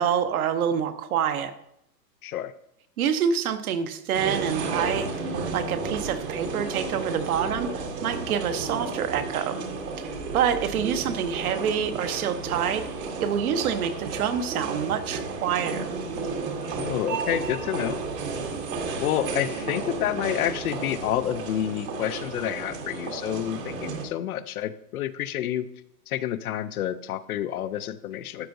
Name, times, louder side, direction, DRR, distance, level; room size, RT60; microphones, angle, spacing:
voice 1, 0.0-1.5 3.0-9.6 10.0-12.9 13.2-15.9, right 8 dB, 60° right, 9 dB, 1.0 m, -27 dB
voice 2, 2.2-2.5 16.6-18.0 19.0-25.7 26.1-28.5, left 11 dB, 60° left, 14 dB, 0.6 m, -29 dB
sound 1, 4.1-24.1, right 4 dB, 75° right, 2.2 m, -32 dB
12.5 x 7.7 x 2.6 m, 0.77 s
hypercardioid pair, 145°, 50 cm